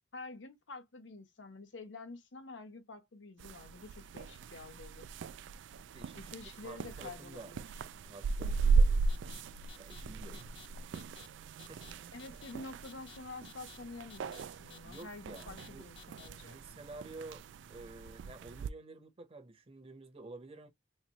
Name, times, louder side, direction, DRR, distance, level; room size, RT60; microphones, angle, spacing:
voice 1, 0.1-5.1 6.1-7.6 12.1-16.6, left 3 dB, 90° left, 0.8 m, -48 dB
sound 1, 3.4-18.7, right 4 dB, 75° right, 0.3 m, -36 dB
voice 2, 5.9-6.3 6.6-7.5 8.0-9.2 9.7-10.8 11.7-11.8 14.8-15.9 16.5-20.7, right 2 dB, 30° right, 0.9 m, -50 dB
sound 2, 9.1-9.4 9.7-10.0 10.3-10.7 10.9-11.3 11.6-11.9 12.2-12.5 12.8-13.2 13.4-13.8 14.1-14.4 14.7-15.0 15.4-15.7 16.0-16.3, left 8 dB, 30° left, 0.4 m, -54 dB
4.1 x 2.5 x 2.9 m
head